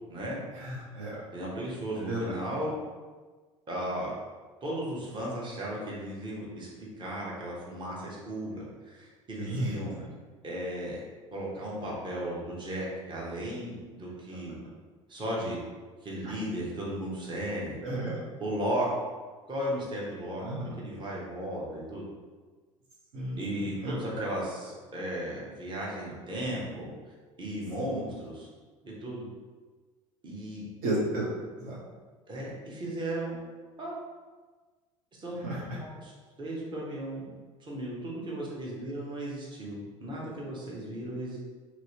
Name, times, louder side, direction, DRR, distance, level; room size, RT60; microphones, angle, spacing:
voice 1, 0.5-1.2 2.0-2.3 9.4-9.7 16.2-16.3 17.8-18.1 20.4-20.7 23.1-24.0 30.8-31.2 31.6-31.8 35.4-35.8, right 1 dB, 55° right, -6 dB, 0.8 m, -33 dB
voice 2, 1.3-2.8 3.7-4.1 4.6-6.7 7.0-10.0 10.4-11.0 11.3-14.6 15.1-15.6 16.0-17.8 18.4-18.9 19.5-20.4 20.8-22.0 23.4-26.9 27.4-28.5 28.8-29.3 30.2-30.7 32.3-33.4 33.8-34.0 35.2-35.3 35.8-36.1 36.4-37.3 37.6-41.4, right 1 dB, 25° right, -5 dB, 1.0 m, -35 dB
2.9 x 2.9 x 2.9 m, 1.4 s
figure-of-eight pair, 70°, 18 cm